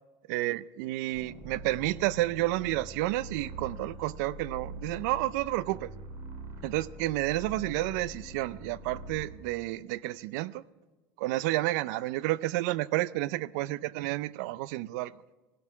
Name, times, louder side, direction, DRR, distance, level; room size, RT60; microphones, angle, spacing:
voice 1, 0.3-5.9 6.6-10.6 11.2-15.1, right 17 dB, 90° right, 20 dB, 0.5 m, -30 dB
sound 1, 1.1-9.4, right 1 dB, 65° right, 3.0 m, -44 dB
18.0 x 12.5 x 5.9 m, 1.2 s
cardioid pair, 135°, 9 cm